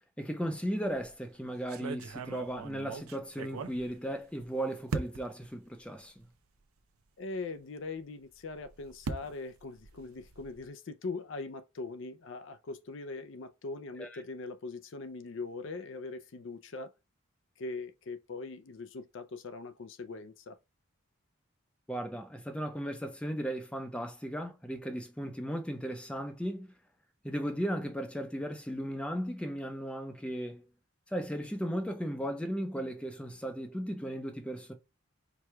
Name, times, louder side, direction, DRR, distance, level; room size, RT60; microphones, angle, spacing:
voice 1, 0.2-6.1 14.0-14.2 21.9-26.7 27.2-30.6 31.1-34.7, equal, 5° left, 0.5 m, -36 dB
sound 1, 0.8-1.2 1.7-4.4 4.9-5.5 6.2-6.3 6.6-6.7 8.4-10.7, right 4 dB, 85° right, 0.6 m, -40 dB
voice 2, 7.2-16.9 17.6-20.6, left 3 dB, 60° left, 0.4 m, -41 dB
4.7 x 2.3 x 4.4 m
head